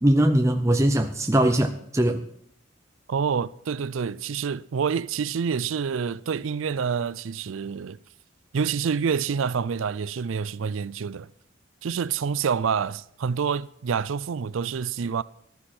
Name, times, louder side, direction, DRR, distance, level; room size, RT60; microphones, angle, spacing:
voice 1, 0.0-2.2, right 1 dB, 15° right, 0.6 m, -21 dB
voice 2, 3.1-8.0 8.5-11.3 11.8-15.2, right 6 dB, 75° right, 0.4 m, -27 dB
15.0 x 12.5 x 4.3 m
head